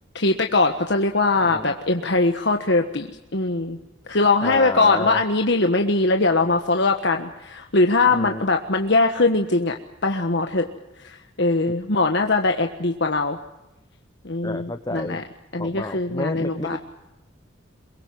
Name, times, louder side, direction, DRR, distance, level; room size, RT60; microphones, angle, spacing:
voice 1, 0.1-3.8 4.1-9.8 10.0-10.7 11.4-13.4 14.2-15.2 15.5-16.8, left 3 dB, 60° left, 4 dB, 1.4 m, -21 dB
voice 2, 1.4-1.7 4.4-5.2 8.1-8.5 14.4-15.2 15.6-16.8, left 2 dB, 20° left, 9 dB, 0.9 m, -30 dB
23.5 x 22.5 x 7.7 m, 0.96 s
head